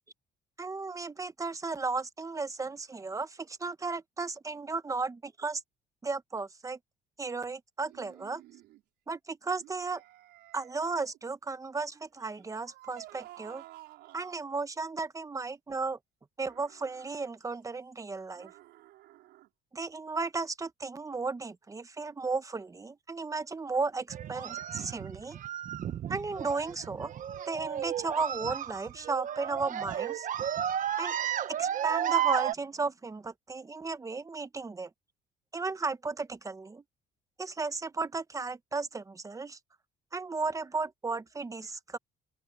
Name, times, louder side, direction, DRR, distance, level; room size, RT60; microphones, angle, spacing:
voice 1, 0.6-5.6 6.0-6.8 7.2-8.4 9.1-10.0 10.5-13.6 14.1-16.0 16.4-18.5 19.7-25.4 26.1-27.1 27.5-30.3 31.0-31.2 31.5-34.9 35.5-36.8 37.4-39.6 40.1-42.0, right 4 dB, 20° right, 1.1 m, -34 dB
sound 1, 7.9-8.8 9.6-11.2 12.2-14.5 16.4-17.3 18.3-19.5, right 16 dB, 85° right, 6.1 m, -53 dB
sound 2, 24.1-32.5, right 10 dB, 50° right, 1.1 m, -33 dB
open air
cardioid pair, 110°, 17 cm